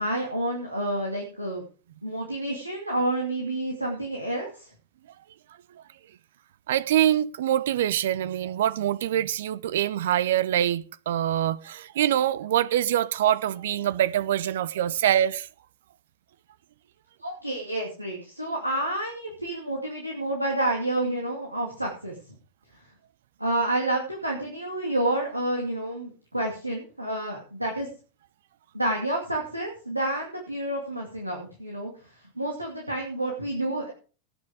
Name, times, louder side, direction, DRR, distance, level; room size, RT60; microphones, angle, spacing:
voice 1, 0.0-1.6 2.0-4.7 17.2-22.2 23.4-27.9 28.7-33.9, right 1 dB, 90° right, 2.4 m, -29 dB
voice 2, 6.7-15.5, right 11 dB, 60° right, 0.5 m, -24 dB
18.0 x 6.3 x 4.9 m
figure-of-eight pair, 90°, 0 cm